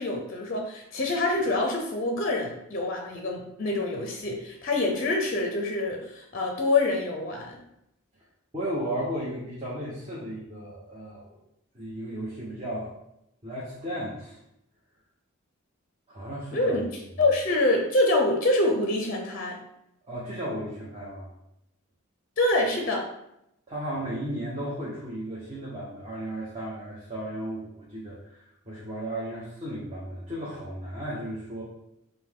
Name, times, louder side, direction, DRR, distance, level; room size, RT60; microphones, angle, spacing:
voice 1, 0.0-7.5 16.5-16.9 17.2-19.6 22.4-23.1, left 2 dB, 40° left, 2 dB, 0.5 m, -26 dB
voice 2, 8.5-11.4 11.7-12.9 13.4-14.4 16.1-16.8 20.1-21.3 23.7-31.6, right 1 dB, 30° right, -7 dB, 0.9 m, -35 dB
5.3 x 2.2 x 3.6 m, 0.82 s
head